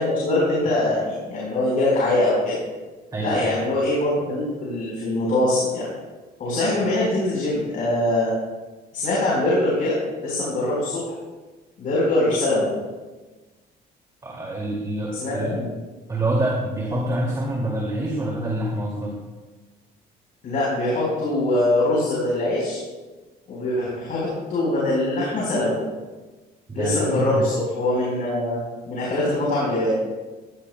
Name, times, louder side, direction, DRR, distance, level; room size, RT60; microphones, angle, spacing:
voice 1, 0.0-2.6 3.2-5.8 6.4-8.3 8.9-11.1 11.8-12.7 15.2-15.6 20.4-22.8 23.5-25.8 26.7-28.6 28.9-29.9, left 1 dB, 55° left, -5 dB, 4.3 m, -23 dB
voice 2, 3.1-3.7 14.2-15.6 16.1-19.1 26.7-27.4, right 1 dB, 20° right, -3 dB, 2.3 m, -26 dB
15.5 x 14.0 x 2.2 m, 1.2 s
cardioid pair, 110°, 17 cm